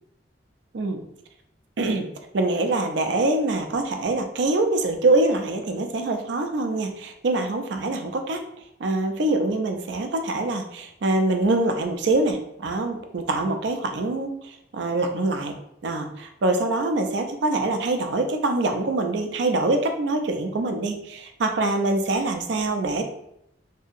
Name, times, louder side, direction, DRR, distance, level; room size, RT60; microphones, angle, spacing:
voice 1, 2.3-8.4 8.8-15.5 15.8-23.0, right 2 dB, 65° right, 5 dB, 0.4 m, -24 dB
2.7 x 2.7 x 2.4 m, 0.77 s
head